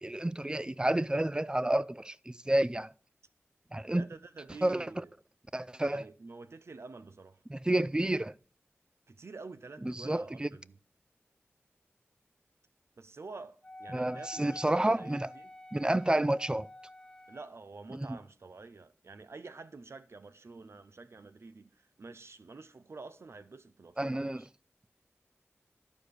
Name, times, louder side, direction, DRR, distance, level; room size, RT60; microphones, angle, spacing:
voice 1, 0.0-2.9 3.7-4.0 4.6-5.0 5.5-6.1 7.5-8.3 9.8-10.5 13.9-15.3 15.7-16.7 17.9-18.2 24.0-24.4, right 1 dB, 20° right, 0.4 m, -30 dB
voice 2, 3.9-5.1 5.9-7.4 9.1-10.8 13.0-15.5 17.3-24.5, right 3 dB, 70° right, 0.6 m, -48 dB
Wind instrument woodwind instrument, 13.6-17.5, left 1 dB, 20° left, 0.7 m, -48 dB
12.0 x 4.8 x 6.6 m
cardioid pair, 45°, 5 cm